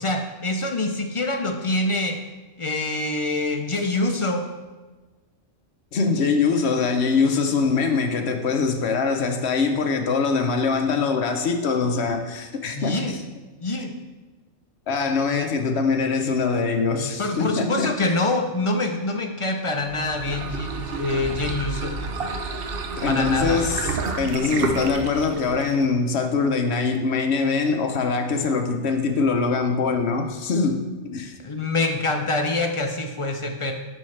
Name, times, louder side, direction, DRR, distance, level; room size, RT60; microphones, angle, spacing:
voice 1, 0.0-2.2 2.6-4.4 12.7-13.2 13.6-13.9 17.2-21.9 23.1-23.6 31.4-33.7, left 2 dB, 45° left, 4 dB, 0.4 m, -25 dB
voice 2, 5.9-13.0 14.9-18.1 23.0-31.3, left 4 dB, 60° left, 5 dB, 1.0 m, -23 dB
sound 1, 19.8-25.9, right 3 dB, 55° right, 0.8 m, -30 dB
10.5 x 5.4 x 3.3 m, 1.3 s
omnidirectional pair, 1.3 m